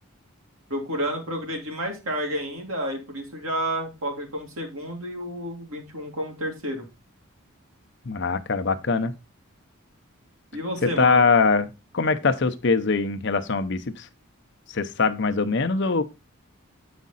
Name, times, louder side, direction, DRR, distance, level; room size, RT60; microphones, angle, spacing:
voice 1, 0.7-6.9 10.5-11.2, equal, 80° right, 2.4 m, -30 dB
voice 2, 8.1-9.1 10.8-11.7 11.9-14.1 14.7-16.0, left 4 dB, 55° left, 0.7 m, -22 dB
8.4 x 5.1 x 4.0 m
head